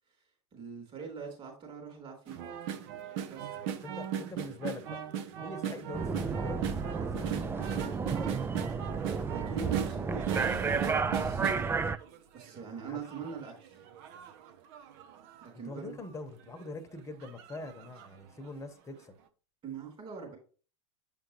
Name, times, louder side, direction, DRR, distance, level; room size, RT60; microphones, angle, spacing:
voice 1, 0.5-2.4 3.3-3.5 9.2-11.5 12.3-13.8 15.4-16.0 19.6-20.4, right 6 dB, 35° right, 3.7 m, -43 dB
sound 1, 2.3-12.6 13.0-15.5 16.0-16.1 16.4-16.7 17.2-18.2 18.5-18.6, right 9 dB, 60° right, 0.8 m, -38 dB
voice 2, 3.5-5.0 5.4-7.8 12.8-13.0 15.6-19.2, left 3 dB, 20° left, 1.1 m, -44 dB
sound 2, 5.9-12.0, right 5 dB, 15° right, 0.4 m, -32 dB
7.8 x 5.2 x 3.1 m
hypercardioid pair, 100°, 16 cm